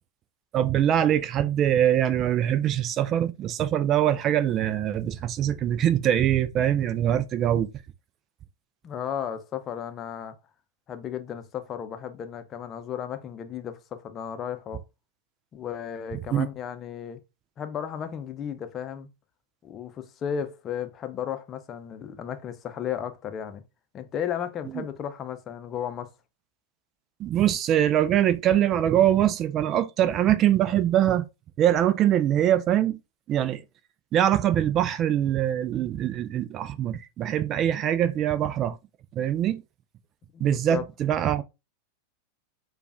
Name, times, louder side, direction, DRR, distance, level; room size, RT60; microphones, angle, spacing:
voice 1, 0.5-7.7 16.3-16.5 24.7-24.8 27.2-31.3 31.6-33.0 33.3-33.6 34.1-38.8 39.1-39.6 40.4-41.4, right 11 dB, 30° right, 0.4 m, -23 dB
voice 2, 8.8-10.4 10.9-14.8 15.5-17.2 17.6-19.1 19.6-23.6 23.9-26.1 40.3-40.8, left 8 dB, 30° left, 0.6 m, -34 dB
6.7 x 2.4 x 2.5 m
figure-of-eight pair, 90°, 0 cm